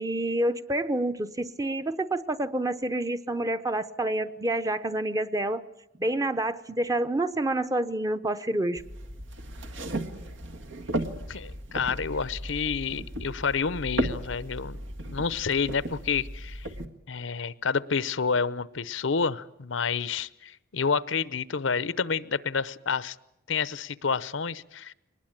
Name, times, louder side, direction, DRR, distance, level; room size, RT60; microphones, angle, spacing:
voice 1, 0.0-5.6 6.0-8.8, right 1 dB, 20° right, 10 dB, 0.8 m, -28 dB
sound 1, 8.8-16.9, right 1 dB, 80° right, 1.7 m, -35 dB
voice 2, 11.0-14.8 15.1-16.7 17.1-23.2 23.5-24.9, left 5 dB, 80° left, 17 dB, 0.8 m, -29 dB
23.5 x 20.0 x 8.8 m, 0.87 s
head